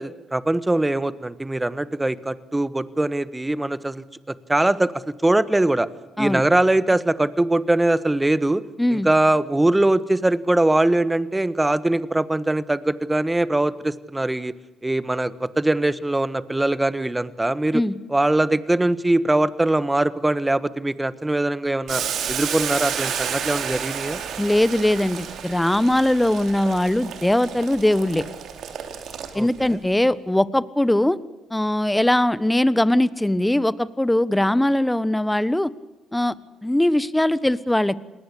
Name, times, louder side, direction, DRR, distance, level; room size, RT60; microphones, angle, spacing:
voice 1, 0.0-4.9 5.2-5.9 6.2-8.6 8.9-14.5 14.8-17.8 18.1-22.0 22.3-24.2 29.3-29.8, right 1 dB, 15° right, 16 dB, 1.4 m, -22 dB
Boiling, 21.9-29.7, right 8 dB, 70° right, 3.3 m, -31 dB
voice 2, 24.4-28.2 29.3-31.2 31.5-35.7 36.1-36.3 36.6-38.0, left 1 dB, 10° left, 18 dB, 1.2 m, -20 dB
28.5 x 20.0 x 8.6 m, 1.0 s
supercardioid pair, 65°, 0 cm